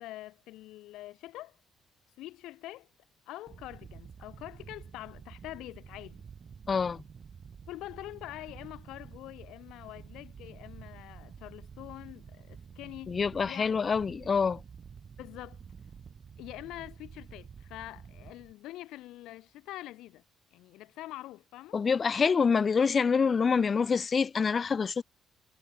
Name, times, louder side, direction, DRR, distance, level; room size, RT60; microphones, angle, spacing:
voice 1, 0.0-1.6 2.2-2.9 3.3-6.2 7.7-13.2 13.5-13.8 15.2-15.6 16.4-20.2 20.5-21.8, left 16 dB, 80° left, 3.6 m, -45 dB
sound 1, 3.5-18.5, right 6 dB, 50° right, 6.5 m, -50 dB
voice 2, 6.7-7.0 13.1-14.6 21.7-25.0, left 5 dB, 40° left, 1.0 m, -26 dB
supercardioid pair, 65°, 0 cm